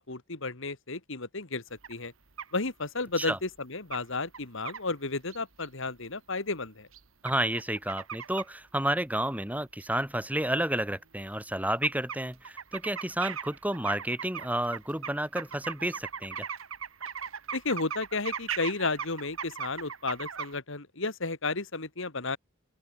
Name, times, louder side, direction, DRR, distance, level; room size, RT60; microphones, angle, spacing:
voice 1, 0.0-1.6 1.9-2.1 2.5-6.9 17.5-22.4, left 3 dB, 65° left, 2.4 m, -33 dB
sound 1, 1.8-1.9 2.4-2.5 3.6-3.7 3.9-4.0 4.3-4.8 5.3-5.7 6.9-8.5 9.8-9.9 10.5-10.6 10.8-10.9 11.2-11.5 11.8-20.6, right 7 dB, 75° right, 2.5 m, -39 dB
voice 2, 7.2-16.5, right 1 dB, 5° right, 4.8 m, -31 dB
open air
head